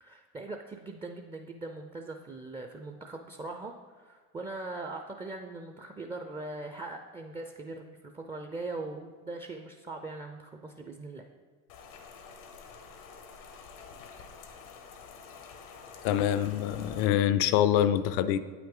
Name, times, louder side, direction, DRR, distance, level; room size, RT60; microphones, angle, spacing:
voice 1, 0.0-11.2, right 2 dB, 15° right, 4 dB, 0.5 m, -41 dB
Rain, 11.7-17.1, left 5 dB, 85° left, 1.0 m, -48 dB
voice 2, 16.0-18.4, left 11 dB, 70° left, 13 dB, 0.6 m, -25 dB
8.3 x 5.9 x 3.8 m, 1.5 s
supercardioid pair, 90°, 38 cm